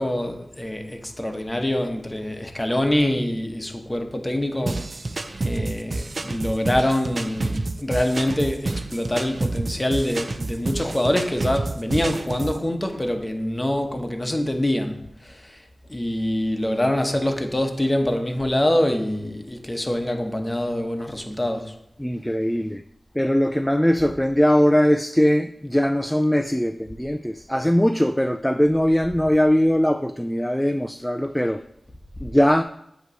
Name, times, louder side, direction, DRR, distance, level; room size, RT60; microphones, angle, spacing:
voice 1, 0.0-4.9 5.4-15.6 15.9-21.7, left 1 dB, 20° left, 1.0 m, -25 dB
sound 1, 4.7-12.6, right 2 dB, 55° right, 0.5 m, -29 dB
voice 2, 22.0-22.8 23.1-31.6 32.2-32.6, equal, 5° left, 0.3 m, -20 dB
8.1 x 3.0 x 6.2 m
cardioid pair, 45°, 0 cm